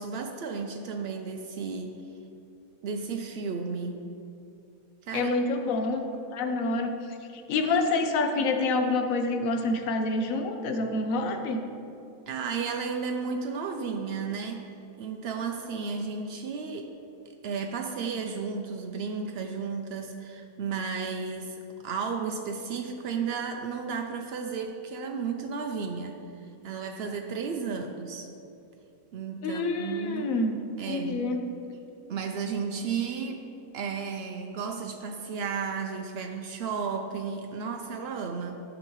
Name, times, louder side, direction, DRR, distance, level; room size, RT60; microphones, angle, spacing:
voice 1, 0.0-2.0 2.8-4.1 5.0-5.3 12.3-14.7 15.0-16.9 17.4-26.2 26.6-28.3 29.1-30.3 30.8-31.3 32.1-33.5 33.7-38.6, right 5 dB, 90° right, 4 dB, 0.5 m, -33 dB
voice 2, 5.1-6.9 7.3-11.6 29.4-30.6 30.9-31.4, left 3 dB, 65° left, 6 dB, 1.0 m, -27 dB
11.0 x 6.2 x 3.0 m, 2.7 s
omnidirectional pair, 1.6 m